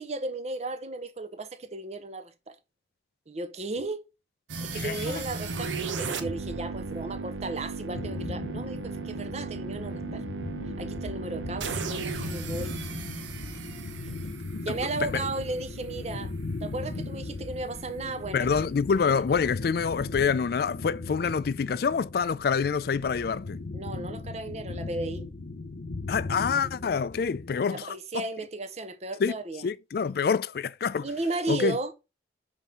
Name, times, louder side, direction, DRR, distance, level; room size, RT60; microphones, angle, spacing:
voice 1, 0.0-2.6 3.3-4.1 4.6-10.2 10.8-12.8 14.6-16.3 16.6-18.7 21.2-21.3 23.7-25.2 27.7-29.6 31.0-31.9, right 2 dB, 35° right, 0.7 m, -35 dB
sound 1, 4.5-15.5, right 4 dB, 90° right, 0.9 m, -36 dB
voice 2, 4.7-5.2 14.7-15.2 18.3-23.6 26.1-28.2 29.2-29.4 29.6-31.1 31.5-31.8, left 6 dB, 55° left, 0.3 m, -27 dB
sound 2, 7.9-27.6, left 2 dB, 85° left, 0.9 m, -38 dB
5.4 x 3.5 x 5.6 m
head